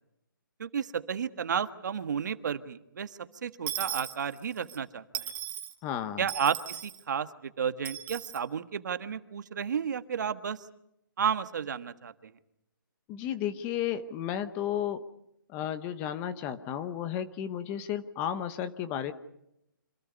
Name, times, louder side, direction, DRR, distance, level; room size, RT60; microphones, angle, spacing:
voice 1, 0.6-5.3 6.2-10.6 11.2-12.3, right 7 dB, 55° right, 10 dB, 1.6 m, -32 dB
Dishes pots and pans / Coin (dropping), 3.7-4.8 5.1-5.7 6.3-7.0 7.8-8.4, right 11 dB, 15° right, 1.4 m, -37 dB
voice 2, 5.8-6.3 13.1-15.0 15.5-19.1, left 10 dB, 15° left, 11 dB, 0.9 m, -33 dB
28.5 x 26.5 x 5.4 m, 0.79 s
hypercardioid pair, 165°, 11 cm